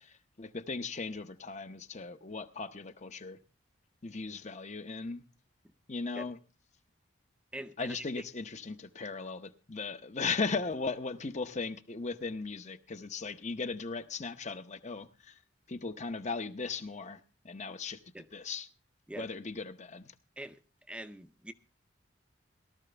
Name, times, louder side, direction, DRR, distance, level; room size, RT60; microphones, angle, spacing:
voice 1, 0.4-3.4 4.0-5.2 5.9-6.4 7.8-15.3 15.7-17.2 17.4-18.0 18.3-18.7 19.2-20.1, left 4 dB, 35° left, 0.8 m, -37 dB
voice 2, 7.5-8.2 18.1-18.3 19.1-19.3 20.4-20.6 20.9-21.5, right 1 dB, 5° right, 0.6 m, -43 dB
18.0 x 12.5 x 3.3 m
head